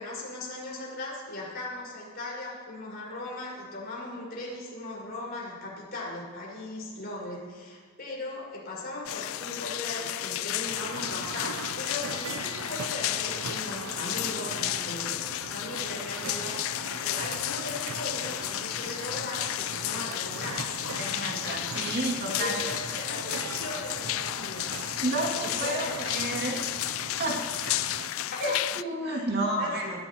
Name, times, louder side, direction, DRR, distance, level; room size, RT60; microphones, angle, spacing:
voice 1, 0.0-21.0 22.4-24.9 25.4-26.0 28.3-28.4 29.0-29.3 29.6-30.0, left 2 dB, 50° left, -4 dB, 5.1 m, -38 dB
sound 1, 9.1-28.8, left 15 dB, 70° left, 0.3 m, -33 dB
sound 2, 10.7-28.1, right 5 dB, 85° right, 0.6 m, -40 dB
voice 2, 20.9-22.6 25.0-26.7 27.2-27.4 28.4-30.0, right 1 dB, 50° right, -1 dB, 2.3 m, -30 dB
22.0 x 13.5 x 3.0 m, 1.5 s
head